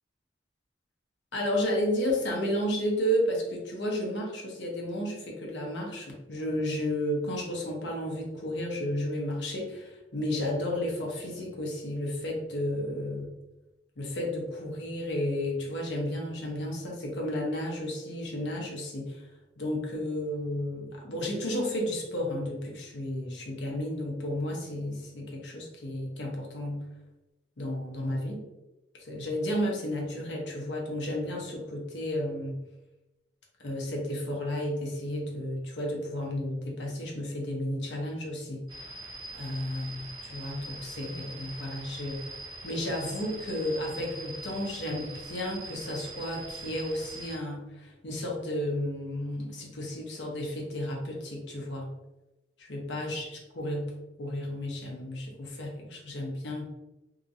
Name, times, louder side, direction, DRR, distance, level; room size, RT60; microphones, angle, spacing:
voice 1, 1.3-13.3 14.0-19.3 19.6-26.9 27.6-28.4 29.0-32.6 33.6-38.6 39.3-42.3 42.6-51.9 52.6-56.7, left 1 dB, 75° left, -1 dB, 0.8 m, -32 dB
sound 1, 38.7-47.4, right 2 dB, 25° right, 0.7 m, -43 dB
2.8 x 2.6 x 2.7 m, 1.0 s
head